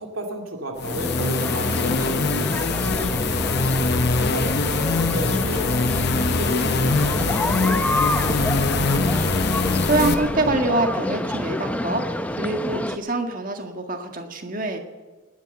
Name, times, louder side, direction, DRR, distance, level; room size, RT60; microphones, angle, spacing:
voice 1, 0.0-3.6 4.2-5.8 6.2-9.4, equal, 85° right, 3 dB, 2.5 m, -33 dB
sound 1, 0.8-10.1, left 3 dB, 55° left, 0.9 m, -23 dB
sound 2, 0.8-13.0, left 1 dB, 5° left, 0.6 m, -28 dB
sound 3, 2.9-10.6, left 1 dB, 75° left, 2.4 m, -33 dB
voice 2, 9.8-14.8, right 2 dB, 40° right, 5 dB, 1.7 m, -25 dB
19.0 x 10.0 x 7.1 m, 1.3 s
head